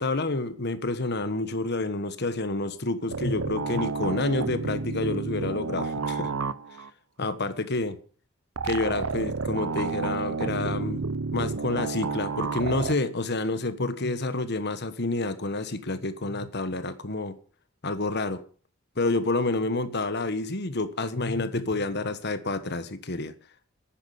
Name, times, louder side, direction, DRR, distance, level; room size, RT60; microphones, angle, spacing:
voice 1, 0.0-6.3 7.2-8.0 8.6-11.1 11.3-17.3 17.8-18.4 19.0-23.3, left 2 dB, 55° left, 11 dB, 1.4 m, -28 dB
sound 1, 3.1-6.9 8.6-12.9, right 4 dB, 90° right, 0.8 m, -30 dB
10.5 x 9.9 x 6.8 m, 0.42 s
head